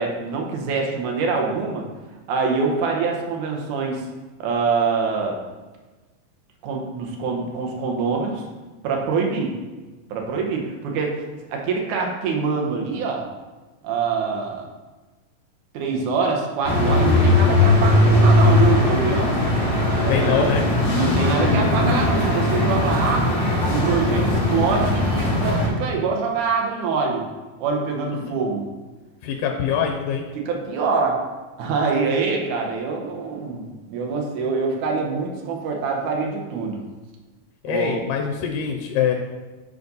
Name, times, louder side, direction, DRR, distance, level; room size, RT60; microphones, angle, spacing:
voice 1, 0.0-1.9 2.3-4.1 4.4-5.4 6.6-8.4 8.8-9.6 10.1-11.2 11.5-13.2 13.8-14.7 15.7-19.3 20.0-20.5 20.9-27.3 27.6-28.7 30.3-31.2 31.6-36.8 37.7-38.0, right 4 dB, 70° right, 1 dB, 2.4 m, -25 dB
sound 1, 16.6-25.7, left 1 dB, 35° left, 2.2 m, -19 dB
voice 2, 20.1-20.6 28.2-28.3 29.2-30.2 37.6-39.1, left 8 dB, 85° left, 2 dB, 2.3 m, -23 dB
7.2 x 5.1 x 4.0 m, 1.2 s
omnidirectional pair, 3.8 m